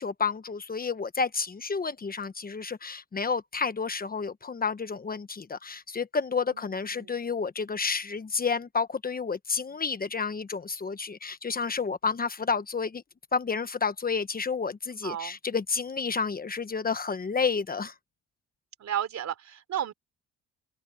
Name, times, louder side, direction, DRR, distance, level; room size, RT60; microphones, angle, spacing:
voice 1, 0.0-13.0 13.3-17.9, left 5 dB, 30° left, 1.2 m, -30 dB
voice 2, 6.5-7.2 15.0-15.4 18.8-19.9, right 10 dB, 65° right, 3.8 m, -34 dB
open air
cardioid pair, 90°, 30 cm